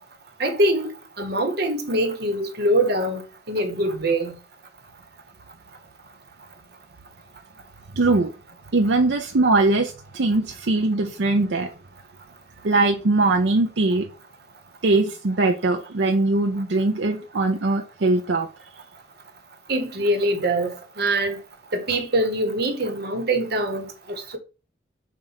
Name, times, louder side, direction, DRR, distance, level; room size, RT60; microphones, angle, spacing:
voice 1, 0.4-0.9 1.2-3.2 3.5-4.3 19.7-21.4 21.7-23.9, right 1 dB, 60° right, 1.3 m, -23 dB
voice 2, 8.0-8.3 8.7-11.7 12.6-14.1 14.8-18.5, right 2 dB, 80° right, 0.6 m, -21 dB
7.4 x 2.5 x 5.7 m
head